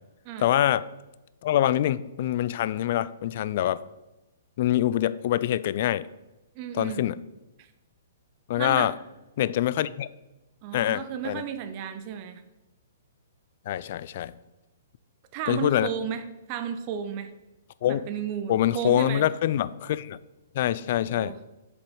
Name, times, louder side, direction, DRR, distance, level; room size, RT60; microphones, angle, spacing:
voice 1, 0.4-0.8 1.4-3.8 4.6-6.1 6.7-7.2 8.5-8.9 9.4-10.1 10.7-11.4 13.7-14.3 15.5-15.9 17.8-18.1 18.5-20.2 20.5-21.4, left 12 dB, 45° left, 17 dB, 0.3 m, -25 dB
voice 2, 6.6-7.1 7.6-7.7 8.6-8.9 10.6-12.4 15.3-17.3 17.9-19.3 20.9-21.4, right 8 dB, 35° right, 9 dB, 0.6 m, -33 dB
7.0 x 5.1 x 4.7 m, 1.0 s
figure-of-eight pair, 115°, 0 cm